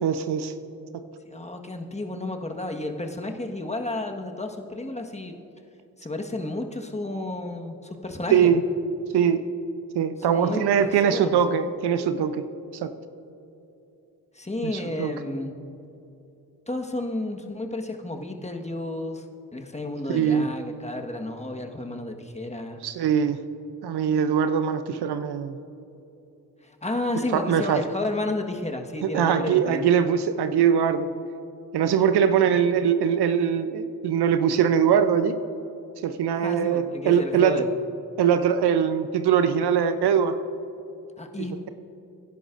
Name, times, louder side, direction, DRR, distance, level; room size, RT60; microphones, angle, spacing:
voice 1, 0.0-0.5 0.9-1.0 8.3-8.6 9.1-9.5 9.9-12.5 12.8-12.9 14.6-15.1 20.1-20.5 22.8-23.4 23.8-25.6 27.2-27.8 29.0-31.1 31.7-35.4 36.0-37.6 38.2-40.3, right 8 dB, 65° right, 10 dB, 0.7 m, -22 dB
voice 2, 1.2-5.3 6.0-8.5 10.3-11.4 14.3-15.5 16.7-19.2 19.5-22.8 26.6-29.8 36.3-37.7 41.2-41.7, left 2 dB, 15° left, 3 dB, 1.4 m, -32 dB
23.0 x 10.5 x 2.6 m, 2.9 s
hypercardioid pair, 45°, 43 cm